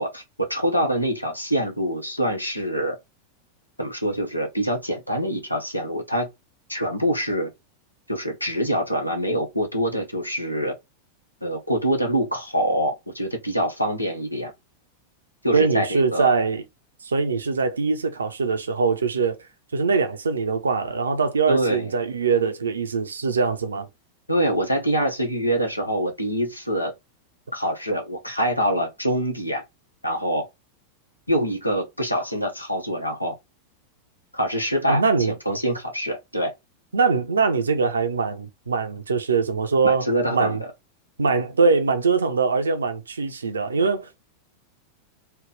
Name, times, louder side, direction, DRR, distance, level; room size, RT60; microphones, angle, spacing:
voice 1, 0.0-3.0 3.8-6.3 6.7-7.5 8.1-10.7 11.4-14.5 15.4-16.3 21.5-21.9 24.3-26.9 27.5-29.6 30.0-30.5 31.3-33.4 34.3-36.5 39.8-40.7, equal, 85° left, 1.0 m, -25 dB
voice 2, 15.5-16.6 17.0-19.4 19.7-23.9 34.9-35.3 36.9-40.6 41.2-44.2, right 4 dB, 75° right, 0.6 m, -22 dB
3.3 x 2.3 x 3.7 m
figure-of-eight pair, 90°, 0 cm